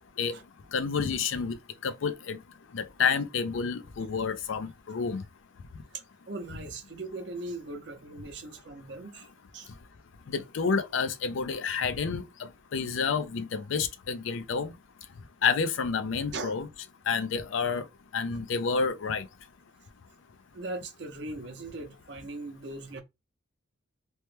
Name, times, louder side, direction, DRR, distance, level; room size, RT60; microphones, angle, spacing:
voice 1, 0.7-1.6 1.8-2.4 2.7-5.2 10.3-14.7 15.4-16.7 17.1-17.9 18.1-19.3, left 5 dB, 75° left, 0.4 m, -29 dB
voice 2, 5.9-9.7 16.3-16.5 20.5-23.0, right 2 dB, 60° right, 0.6 m, -39 dB
2.9 x 2.1 x 3.1 m
head